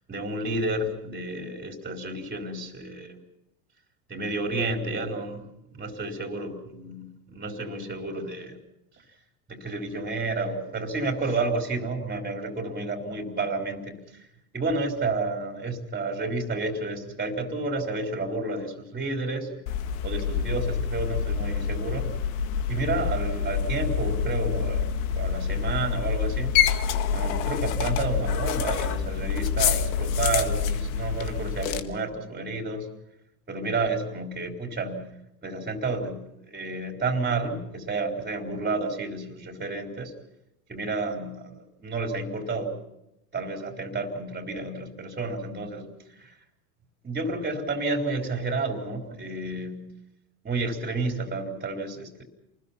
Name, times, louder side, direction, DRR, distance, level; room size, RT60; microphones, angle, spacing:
voice 1, 0.1-3.2 4.1-5.4 5.7-8.6 9.5-14.0 14.5-19.6 20.0-22.1 22.7-26.5 27.1-32.9 33.5-35.1 35.4-40.1 40.7-42.7 43.3-45.9 46.2-46.4 47.0-49.9 50.4-52.2, right 3 dB, 20° right, 3 dB, 4.1 m, -31 dB
sound 1, 19.7-31.8, left 7 dB, 65° left, 2.0 m, -27 dB
28.5 x 20.5 x 5.8 m, 0.86 s
hypercardioid pair, 90°, 44 cm